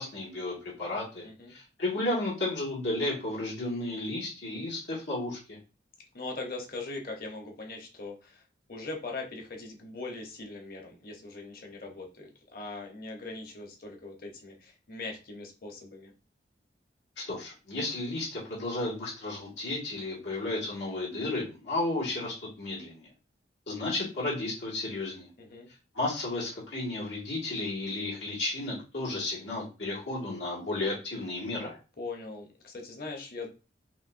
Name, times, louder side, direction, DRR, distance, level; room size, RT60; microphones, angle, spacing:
voice 1, 0.0-5.6 17.2-23.1 23.7-25.3 25.9-31.8, left 2 dB, 85° left, -5 dB, 2.0 m, -33 dB
voice 2, 6.1-8.4 8.7-16.1 25.4-25.7 32.0-33.5, left 3 dB, 50° left, 1 dB, 1.0 m, -41 dB
5.7 x 2.7 x 2.6 m, 0.32 s
head